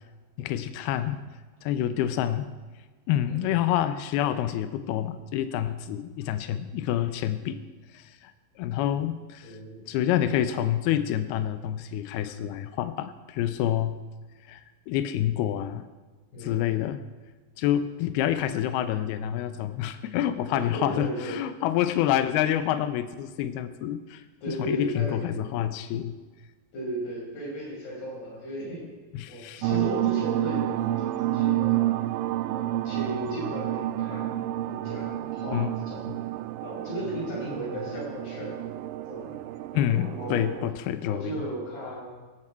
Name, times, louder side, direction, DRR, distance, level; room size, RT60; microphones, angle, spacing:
voice 1, 0.4-1.2 1.6-2.5 3.1-7.6 7.9-8.3 8.6-9.6 9.9-13.9 14.5-15.8 16.4-17.0 17.6-26.2 29.1-29.6 35.5-35.7 36.1-36.2 39.7-41.4, left 11 dB, 80° left, 11 dB, 2.3 m, -27 dB
voice 2, 9.4-9.8 16.3-16.7 20.5-21.4 24.4-25.3 26.7-28.9 29.3-31.9 32.5-34.3 34.7-36.0 36.6-38.6 39.1-39.3 39.9-40.6 41.0-42.1, right 1 dB, 55° left, -4 dB, 7.4 m, -35 dB
sound 1, 29.6-40.7, right 14 dB, 85° right, 2.9 m, -30 dB
17.5 x 14.5 x 4.5 m, 1.3 s
omnidirectional pair, 5.5 m